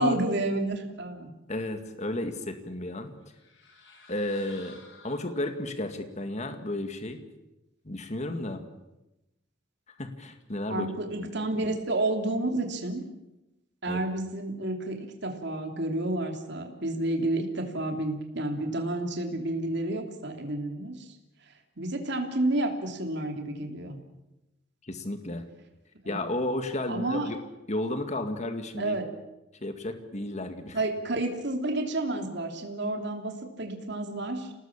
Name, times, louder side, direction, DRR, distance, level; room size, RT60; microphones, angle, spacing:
voice 1, 0.0-1.3 10.7-13.0 13.8-21.2 21.8-24.0 26.0-26.2 26.9-27.3 28.8-29.1 30.7-34.5, right 2 dB, 60° right, 4 dB, 3.2 m, -30 dB
voice 2, 1.5-3.1 4.1-4.8 5.0-7.2 7.8-8.6 10.0-10.9 11.2-11.3 13.9-14.0 24.8-25.4 26.1-27.4 27.7-29.0 29.6-30.8, left 1 dB, 35° left, 7 dB, 2.1 m, -32 dB
sound 1, 3.2-5.8, left 4 dB, 65° left, 6.7 m, -53 dB
27.5 x 19.0 x 7.4 m, 0.96 s
head